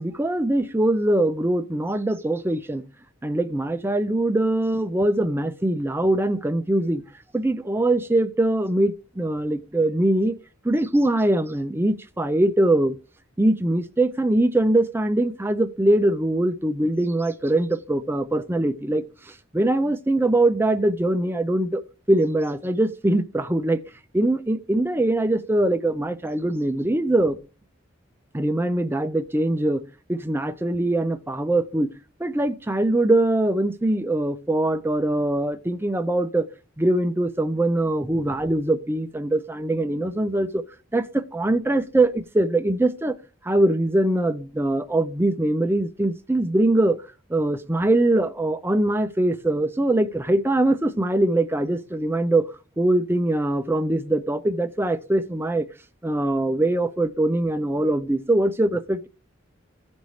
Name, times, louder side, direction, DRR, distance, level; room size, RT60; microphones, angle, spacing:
voice 1, 0.0-2.8 3.2-7.0 7.3-10.4 10.6-13.0 13.4-21.8 22.1-23.8 24.1-27.4 28.3-29.8 30.1-31.9 32.2-36.5 36.8-40.6 40.9-43.1 43.4-47.0 47.3-52.5 52.8-55.6 56.0-59.1, right 1 dB, 10° right, 0.5 m, -22 dB
15.5 x 5.2 x 3.2 m
head